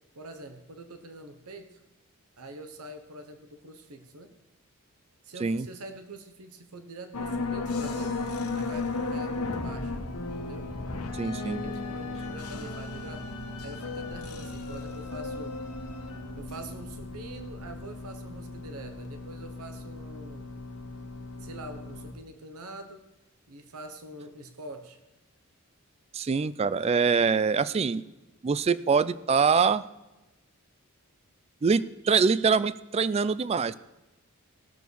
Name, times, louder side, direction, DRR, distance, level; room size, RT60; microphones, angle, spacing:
voice 1, 0.1-1.8 2.4-4.3 5.2-8.1 8.5-10.0 10.4-10.7 11.5-13.3 13.6-15.6 16.4-20.5 21.4-23.0 23.5-25.0, right 2 dB, 80° right, 7 dB, 1.1 m, -44 dB
sound 1, 7.1-22.1, left 3 dB, 85° left, 1.3 m, -35 dB
voice 2, 11.2-11.6 26.1-28.0 28.4-29.8 31.6-33.7, right 5 dB, 25° right, 17 dB, 0.3 m, -24 dB
18.0 x 6.9 x 4.6 m, 1.0 s
head